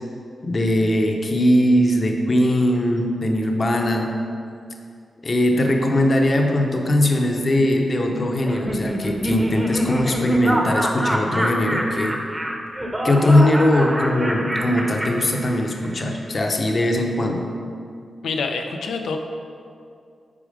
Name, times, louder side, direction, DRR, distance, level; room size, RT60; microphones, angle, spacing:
voice 1, 0.4-4.1 5.2-12.2 13.0-17.4, left 1 dB, 40° left, 2 dB, 0.8 m, -20 dB
Laughter, 8.4-15.9, equal, 10° right, 0.9 m, -26 dB
voice 2, 18.2-19.2, left 4 dB, 85° left, 5 dB, 0.6 m, -26 dB
8.6 x 4.8 x 5.0 m, 2.4 s
wide cardioid pair, 105°, 0 cm